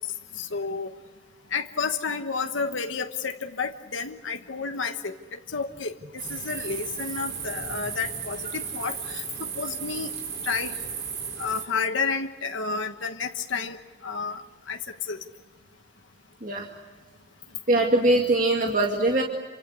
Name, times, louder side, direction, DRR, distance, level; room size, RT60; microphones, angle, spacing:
voice 1, 0.4-0.9 1.5-9.2 9.6-10.1 10.4-10.8 11.4-13.8 14.0-14.4 14.7-15.2, left 5 dB, 85° left, 6 dB, 1.2 m, -31 dB
sound 1, 6.2-11.7, right 6 dB, 65° right, 5.8 m, -35 dB
voice 2, 17.7-19.2, right 2 dB, 45° right, 1 dB, 2.2 m, -22 dB
28.0 x 24.5 x 8.2 m, 1.3 s
head